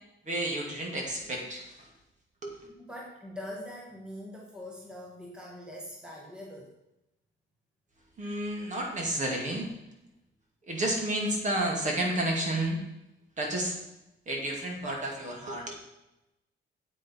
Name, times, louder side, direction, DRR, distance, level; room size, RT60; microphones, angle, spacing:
voice 1, 0.3-1.9 2.4-2.6 8.2-9.7 10.7-12.8 13.4-13.8 14.3-15.7, right 1 dB, 35° right, 0 dB, 2.3 m, -31 dB
voice 2, 2.6-6.8, left 1 dB, 5° right, -3 dB, 1.6 m, -43 dB
9.3 x 8.5 x 4.4 m, 0.91 s
wide cardioid pair, 165°, 21 cm